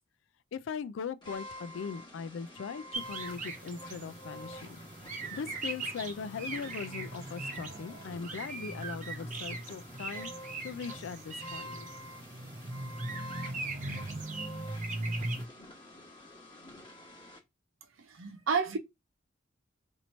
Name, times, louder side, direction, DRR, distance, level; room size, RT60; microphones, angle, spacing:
voice 1, 0.5-4.8 5.3-10.3 10.6-11.9, left 6 dB, 65° left, 0.3 m, -40 dB
sound 1, 1.2-17.4, left 1 dB, 25° left, 1.1 m, -49 dB
sound 2, 2.9-15.5, right 2 dB, 40° right, 0.7 m, -39 dB
voice 2, 18.0-18.8, right 5 dB, 80° right, 0.7 m, -31 dB
2.9 x 2.6 x 4.2 m
head